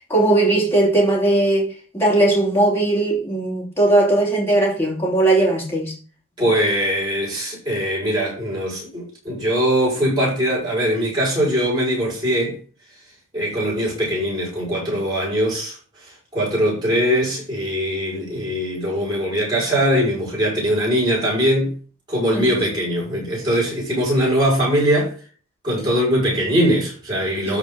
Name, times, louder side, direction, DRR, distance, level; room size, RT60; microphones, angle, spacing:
voice 1, 0.1-5.9 22.3-22.6 27.5-27.6, right 2 dB, 10° left, 2.8 m, -18 dB
voice 2, 6.4-12.6 13.3-15.8 16.0-21.7 22.1-25.1 25.6-27.6, equal, 20° right, 6.2 m, -21 dB
13.0 x 4.5 x 5.7 m
head